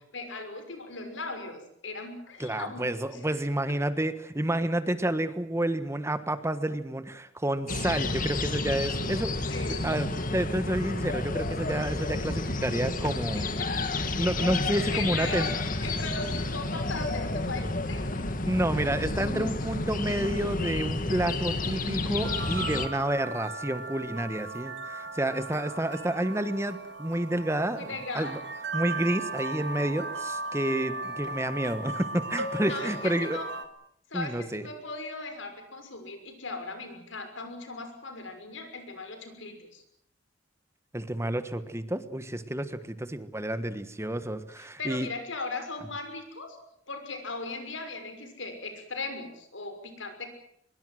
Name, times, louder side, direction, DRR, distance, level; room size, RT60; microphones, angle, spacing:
voice 1, 0.1-3.2 9.5-9.9 13.3-13.8 14.9-15.5 15.8-18.3 27.7-28.4 32.7-33.5 34.1-39.8 44.6-46.6 46.9-50.3, left 3 dB, 85° left, 7 dB, 6.2 m, -38 dB
voice 2, 2.4-9.3 9.8-13.5 14.1-15.5 18.5-27.9 28.1-28.4 28.7-33.4 34.1-34.7 40.9-45.1, right 1 dB, 15° right, 11 dB, 1.4 m, -29 dB
sound 1, 7.7-22.9, left 2 dB, 45° left, 2.1 m, -31 dB
sound 2, 22.2-33.6, right 2 dB, 65° right, 3.1 m, -37 dB
24.0 x 22.0 x 7.8 m, 0.72 s
head